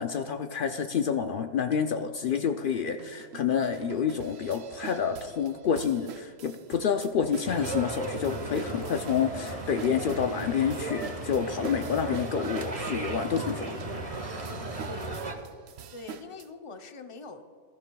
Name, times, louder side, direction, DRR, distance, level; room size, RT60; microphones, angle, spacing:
voice 1, 0.0-13.6, left 7 dB, 90° left, 6 dB, 0.4 m, -28 dB
sound 1, 1.7-1.8 2.4-2.5 3.0-16.5, right 8 dB, 60° right, 0.7 m, -45 dB
sound 2, 7.4-15.3, right 2 dB, 25° right, 1.0 m, -35 dB
voice 2, 13.5-13.9 14.9-15.2 15.9-17.4, left 3 dB, 35° left, 6 dB, 0.5 m, -44 dB
21.0 x 13.0 x 2.3 m, 2.1 s
omnidirectional pair, 1.6 m